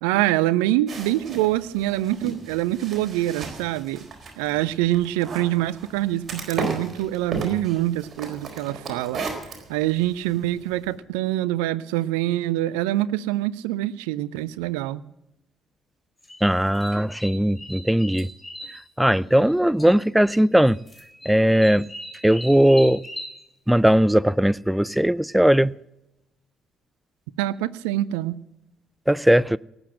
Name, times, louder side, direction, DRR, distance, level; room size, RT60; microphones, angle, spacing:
voice 1, 0.0-4.1 4.4-9.2 9.7-15.0 27.4-28.4, right 15 dB, 70° right, 0.5 m, -25 dB
sound 1, 0.9-10.9, right 3 dB, 40° right, 4.2 m, -36 dB
sound 2, 16.2-19.5 19.8-20.3 20.6-23.4, equal, 15° left, 3.5 m, -39 dB
voice 2, 16.4-18.3 19.0-20.8 21.3-21.9 22.2-23.0 23.7-25.7 29.1-29.6, equal, 5° right, 0.4 m, -18 dB
18.5 x 8.0 x 7.6 m
figure-of-eight pair, 50°, 0 cm